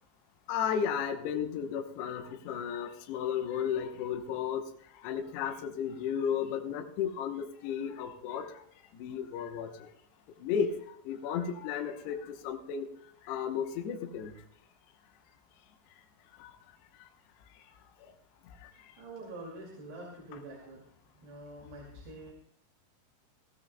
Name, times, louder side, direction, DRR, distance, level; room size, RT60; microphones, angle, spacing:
voice 1, 0.5-4.6 5.0-8.6 9.0-9.7 10.4-10.8 11.1-12.9 13.2-14.3 16.4-16.6 18.6-18.7, left 8 dB, 75° left, 3 dB, 2.8 m, -33 dB
voice 2, 19.0-22.3, right 2 dB, 65° right, -3 dB, 4.3 m, -46 dB
22.5 x 15.5 x 2.2 m, 0.69 s
omnidirectional pair, 5.4 m